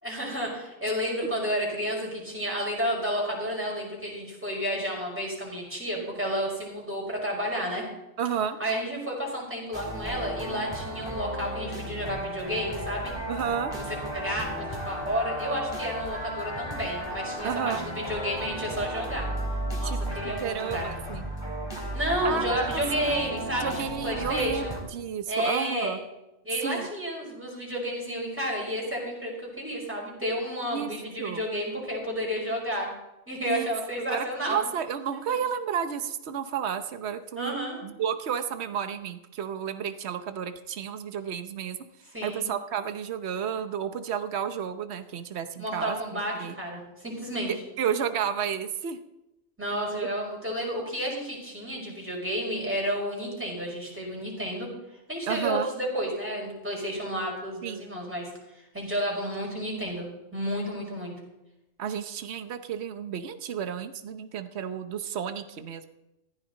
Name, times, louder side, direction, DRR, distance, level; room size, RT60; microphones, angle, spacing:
voice 1, 0.0-7.8 8.6-13.1 13.7-19.3 19.8-21.0 21.9-23.7 24.0-24.7 25.3-26.0 26.4-32.9 33.3-34.6 35.1-35.4 37.4-37.8 42.1-42.5 45.6-47.5 49.6-54.7 55.1-58.3 58.7-60.1 60.3-61.1, equal, 10° right, -3 dB, 5.4 m, -31 dB
voice 2, 8.2-8.6 13.3-13.7 17.4-17.8 19.8-21.3 22.2-26.0 26.6-26.9 30.6-30.9 31.2-31.4 33.4-37.6 37.8-41.8 42.2-46.0 46.4-46.5 47.5-49.0 55.3-55.7 57.6-57.8 61.8-65.9, right 8 dB, 60° right, 9 dB, 1.2 m, -32 dB
sound 1, 9.7-24.8, equal, 20° left, 4.2 m, -34 dB
15.5 x 15.0 x 4.0 m, 0.93 s
omnidirectional pair, 1.3 m